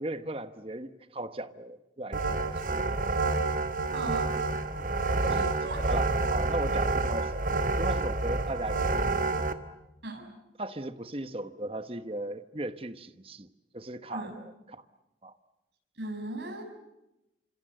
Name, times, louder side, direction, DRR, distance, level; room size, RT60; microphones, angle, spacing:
voice 1, 0.0-2.8 5.2-5.5 5.9-9.5 10.6-14.8 15.2-15.3, right 1 dB, 30° right, 11 dB, 1.1 m, -37 dB
sound 1, 2.1-9.5, right 3 dB, 45° right, 1.5 m, -28 dB
voice 2, 3.9-4.3 5.3-5.8 10.0-10.3 14.1-14.3 16.0-16.6, right 2 dB, 80° right, 2 dB, 7.4 m, -37 dB
27.5 x 26.0 x 7.8 m, 0.91 s
head